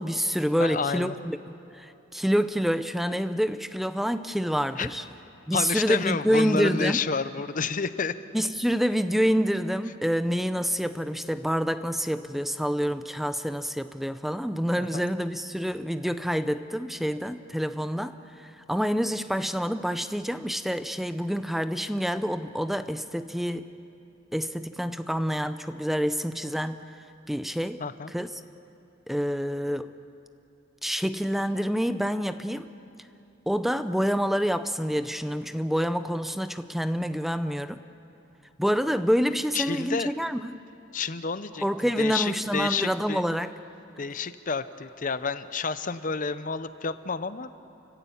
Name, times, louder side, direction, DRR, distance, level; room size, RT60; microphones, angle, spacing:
voice 1, 0.0-1.4 1.8-5.0 5.5-7.0 8.3-23.7 24.3-26.8 27.3-27.8 28.1-28.3 29.1-29.9 30.8-32.7 33.5-37.8 38.6-40.6 41.6-43.5, equal, ahead, 11 dB, 0.5 m, -27 dB
voice 2, 0.6-1.1 4.8-4.9 5.5-8.1 14.8-15.1 27.8-28.1 39.5-40.1 40.9-43.2 44.0-47.5, left 5 dB, 40° left, 13 dB, 0.7 m, -30 dB
29.5 x 15.0 x 8.5 m, 2.8 s
head